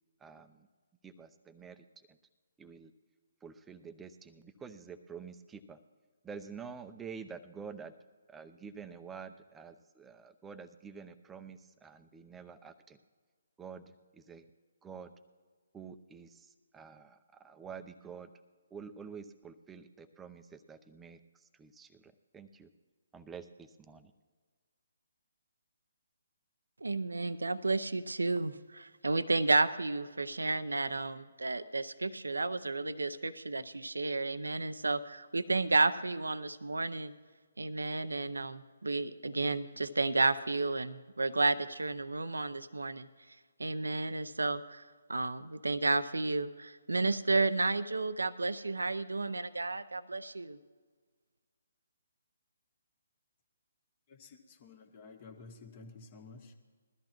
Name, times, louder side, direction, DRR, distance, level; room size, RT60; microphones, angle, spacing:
voice 1, 0.2-0.7 1.0-2.2 2.6-2.9 3.4-5.8 6.2-7.9 8.3-13.0 13.6-14.5 14.8-15.1 15.7-18.3 18.7-22.7 23.1-24.1, right 6 dB, 10° right, 9 dB, 0.7 m, -48 dB
voice 2, 26.8-37.1 37.6-43.1 43.6-44.8 45.1-50.6, right 3 dB, 85° right, 13 dB, 0.6 m, -32 dB
voice 3, 54.1-56.6, left 4 dB, 40° left, 4 dB, 1.7 m, -52 dB
21.0 x 13.5 x 3.0 m, 1.5 s
figure-of-eight pair, 140°, 0 cm